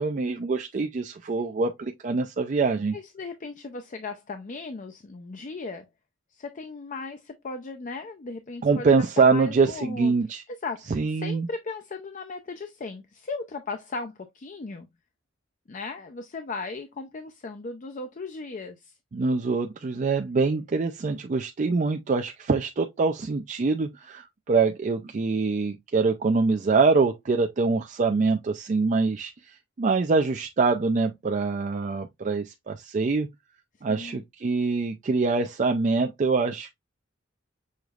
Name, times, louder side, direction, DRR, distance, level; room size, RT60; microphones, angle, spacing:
voice 1, 0.0-3.0 8.6-10.4 10.9-11.5 19.1-33.3 33.8-36.7, right 4 dB, 40° right, 0.4 m, -24 dB
voice 2, 2.9-5.9 6.3-10.1 10.5-14.9 15.7-18.9 33.9-34.2, left 3 dB, 40° left, 0.5 m, -37 dB
6.4 x 3.0 x 2.3 m
head